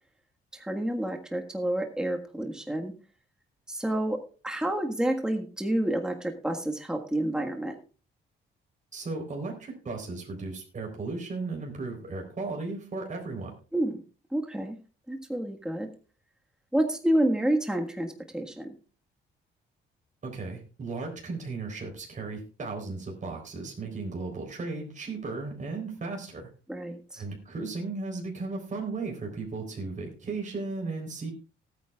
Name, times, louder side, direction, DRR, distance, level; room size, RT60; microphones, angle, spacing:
voice 1, 0.5-2.9 3.7-7.8 13.7-14.0 14.3-14.8 15.1-15.9 16.7-18.7 26.7-27.2, right 1 dB, 5° right, 4 dB, 1.6 m, -29 dB
voice 2, 8.9-13.5 20.2-26.5 27.2-31.3, right 3 dB, 40° right, 1 dB, 4.0 m, -35 dB
18.5 x 9.1 x 2.4 m, 0.37 s
cardioid pair, 90°, 20 cm